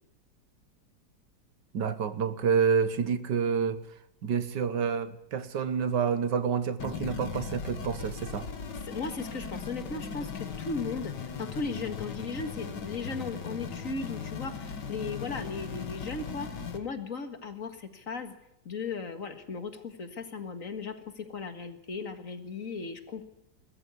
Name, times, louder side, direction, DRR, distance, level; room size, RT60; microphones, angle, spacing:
voice 1, 1.7-3.8 4.2-8.5, right 6 dB, 85° right, 1.9 m, -28 dB
sound 1, 6.8-16.8, left 6 dB, 80° left, 2.3 m, -38 dB
voice 2, 8.7-18.3 18.7-23.2, left 4 dB, 50° left, 2.2 m, -37 dB
21.5 x 13.5 x 9.6 m
omnidirectional pair, 1.8 m